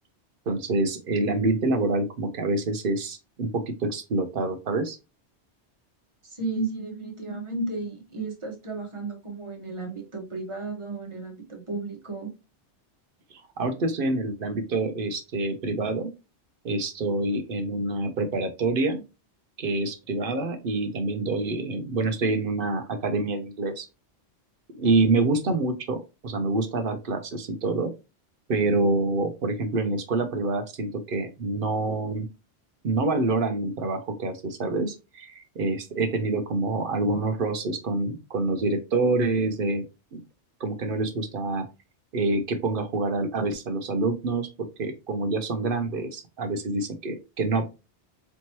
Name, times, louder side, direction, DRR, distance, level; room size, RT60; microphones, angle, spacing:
voice 1, 0.5-5.0 13.3-16.1 16.6-19.0 19.6-23.9 24.7-26.0 26.2-27.9 28.5-32.3 32.8-39.8 40.1-40.2 40.6-41.6 42.1-44.5 44.8-47.7, right 2 dB, 55° right, 8 dB, 0.8 m, -26 dB
voice 2, 6.2-12.3, right 3 dB, 25° right, 1 dB, 1.1 m, -33 dB
4.3 x 3.0 x 2.9 m, 0.28 s
omnidirectional pair, 1.2 m